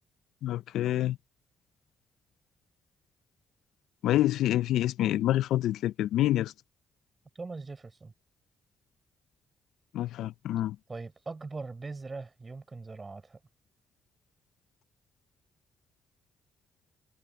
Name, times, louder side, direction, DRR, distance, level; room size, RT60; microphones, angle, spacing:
voice 1, 0.4-1.2 4.0-6.5 9.9-10.8, left 13 dB, 90° left, 0.4 m, -27 dB
voice 2, 7.3-8.1 10.9-13.4, right 3 dB, 30° right, 5.7 m, -41 dB
cardioid pair, 90°, 0 cm